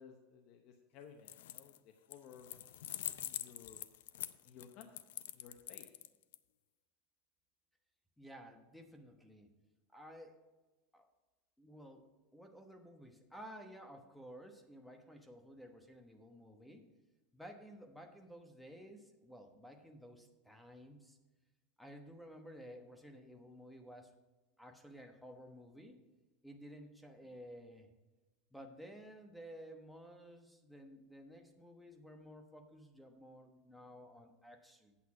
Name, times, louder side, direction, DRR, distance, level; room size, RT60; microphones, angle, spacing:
voice 1, 0.0-3.9 4.4-4.9 5.3-5.9, left 7 dB, 50° left, 4 dB, 0.9 m, -57 dB
sound 1, 1.2-1.8 2.1-6.4, left 13 dB, 85° left, 0.4 m, -44 dB
voice 2, 8.2-9.5 9.9-10.4 10.9-11.0 11.6-16.8 17.3-21.2 21.8-24.1 24.6-26.0 26.4-27.9 28.5-35.0, equal, ahead, 4 dB, 1.0 m, -54 dB
8.6 x 7.9 x 4.7 m, 1.2 s
supercardioid pair, 150°, 0 cm